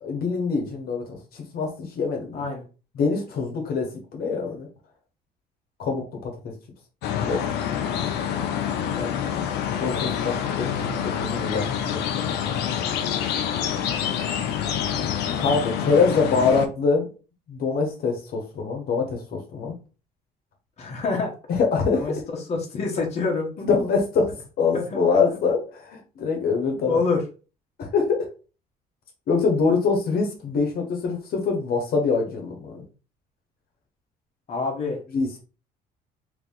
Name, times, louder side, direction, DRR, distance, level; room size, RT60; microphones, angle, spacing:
voice 1, 0.0-2.5 2.9-4.7 5.8-6.5 7.2-7.5 9.7-10.7 11.0-12.3 15.4-17.1 17.5-19.7 21.5-22.1 23.6-27.0 27.8-28.3 29.3-32.8 35.1-35.3, left 4 dB, 65° left, 1 dB, 1.1 m, -24 dB
sound 1, 7.0-16.7, left 8 dB, 80° left, 0.6 m, -27 dB
voice 2, 8.9-9.3 20.8-21.3 21.9-22.1 22.5-23.7 24.7-25.2 26.9-27.2 34.5-35.0, left 4 dB, 40° left, -1 dB, 1.1 m, -27 dB
3.0 x 2.7 x 3.7 m, 0.34 s
cardioid pair, 110°, 17 cm